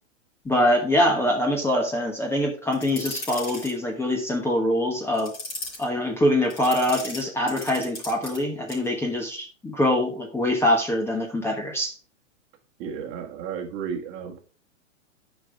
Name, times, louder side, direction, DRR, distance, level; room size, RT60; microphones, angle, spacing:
voice 1, 0.4-5.3 5.8-11.9, left 1 dB, 5° left, 0 dB, 1.1 m, -24 dB
sound 1, 2.7-3.7 5.1-5.8 6.5-8.4 8.7-8.9, left 2 dB, 25° left, 4.5 m, -36 dB
voice 2, 12.8-14.4, right 7 dB, 35° right, 3 dB, 1.7 m, -33 dB
9.7 x 5.6 x 3.3 m, 0.37 s
hypercardioid pair, 125°, 38 cm